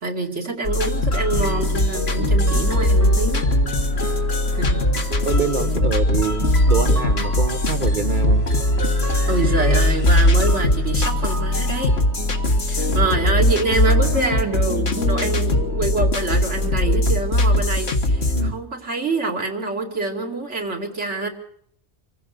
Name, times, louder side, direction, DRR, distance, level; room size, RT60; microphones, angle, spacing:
voice 1, 0.0-3.4 4.5-5.0 9.3-11.9 12.7-21.3, right 3 dB, 85° right, 1 dB, 3.0 m, -26 dB
sound 1, 0.6-18.5, left 1 dB, 65° left, 2.0 m, -20 dB
sound 2, 1.1-17.1, right 1 dB, 15° right, 0.9 m, -33 dB
voice 2, 5.2-8.5 18.3-18.6, right 5 dB, 45° right, 7 dB, 1.2 m, -26 dB
25.0 x 16.0 x 6.7 m, 0.65 s
omnidirectional pair, 1.2 m